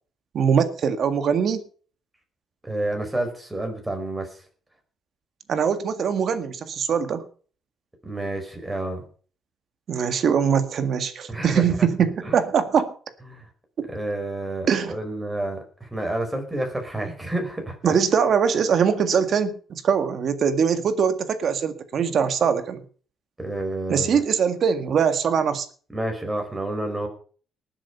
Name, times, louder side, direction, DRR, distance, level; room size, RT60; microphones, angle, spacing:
voice 1, 0.3-1.6 5.5-7.2 9.9-12.9 13.8-13.9 14.7-15.0 17.8-22.8 23.9-25.7, right 7 dB, 55° right, 10 dB, 1.8 m, -22 dB
voice 2, 2.6-4.3 8.0-9.0 11.3-11.6 12.2-12.4 13.3-13.5 13.9-18.0 23.4-24.2 25.9-27.1, right 1 dB, 10° right, 3 dB, 4.9 m, -29 dB
19.5 x 7.6 x 5.6 m, 0.42 s
cardioid pair, 120°, 0 cm